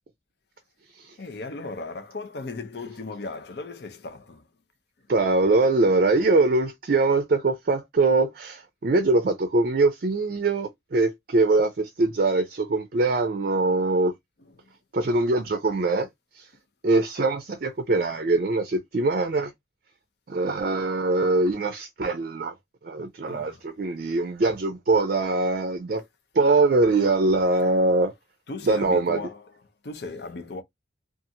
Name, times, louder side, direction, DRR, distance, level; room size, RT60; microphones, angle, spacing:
voice 1, 1.2-4.5 5.0-5.1 14.4-14.8 23.3-23.7 27.4-27.8 28.5-30.6, left 3 dB, 65° left, 0.6 m, -37 dB
voice 2, 5.1-14.1 14.9-16.1 16.3-16.5 16.8-19.5 20.3-22.5 22.8-26.0 26.3-28.1 28.7-29.2, right 3 dB, 50° right, 0.4 m, -22 dB
2.6 x 2.4 x 2.7 m
head